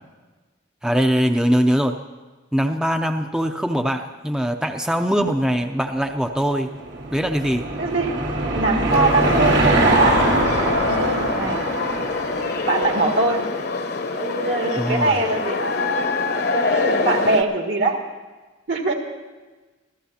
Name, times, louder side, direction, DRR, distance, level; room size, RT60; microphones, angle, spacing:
voice 1, 0.8-1.9 2.5-6.7 7.1-7.7 14.8-15.2, equal, 5° right, 5 dB, 0.5 m, -21 dB
Car passing by / Engine, 6.5-13.3, right 2 dB, 85° right, 3.1 m, -23 dB
voice 2, 7.8-8.2 8.5-10.2 10.9-11.6 12.6-13.4 14.1-15.6 16.5-18.0 18.7-18.9, right 2 dB, 70° right, 1 dB, 2.3 m, -22 dB
sound 1, 8.9-17.4, left 3 dB, 55° left, 1.0 m, -24 dB
26.5 x 16.0 x 2.9 m, 1.3 s
head